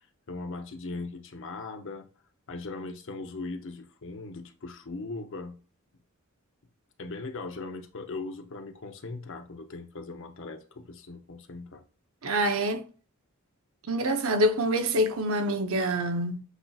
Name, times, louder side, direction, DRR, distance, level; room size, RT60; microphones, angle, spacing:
voice 1, 0.0-2.0 2.5-5.6 7.0-11.8, left 3 dB, 60° left, 0.7 m, -39 dB
voice 2, 12.2-12.8 13.9-16.4, right 1 dB, 70° right, 0.7 m, -26 dB
8.1 x 2.7 x 2.4 m
head